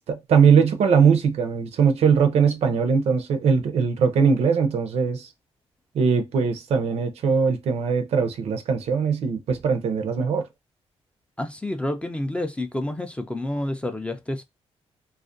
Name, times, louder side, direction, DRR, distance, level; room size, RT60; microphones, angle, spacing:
voice 1, 0.0-5.3 5.9-10.5, right 6 dB, 70° right, 0.5 m, -21 dB
voice 2, 11.4-14.4, left 1 dB, 10° left, 0.3 m, -29 dB
2.4 x 2.1 x 2.5 m
cardioid pair, 110°, 11 cm